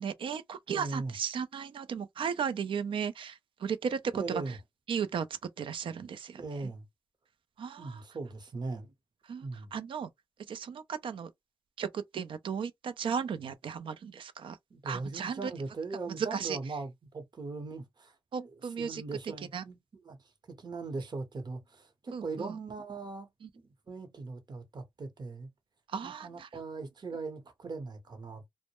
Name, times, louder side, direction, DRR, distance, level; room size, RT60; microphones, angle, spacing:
voice 1, 0.0-4.6 4.9-6.7 7.6-8.0 9.3-10.1 10.5-11.3 11.8-14.6 14.8-15.5 16.1-16.6 18.3-19.0 19.5-19.6 22.1-22.5 23.4-23.5 25.9-26.5, right 7 dB, 75° right, 0.4 m, -35 dB
voice 2, 0.7-1.1 4.1-4.6 6.4-6.8 7.8-8.9 9.4-9.7 14.7-18.5 18.8-19.8 20.0-20.2 20.5-25.5 26.0-28.4, right 3 dB, 55° right, 0.8 m, -39 dB
2.2 x 2.0 x 2.9 m
cardioid pair, 50°, 9 cm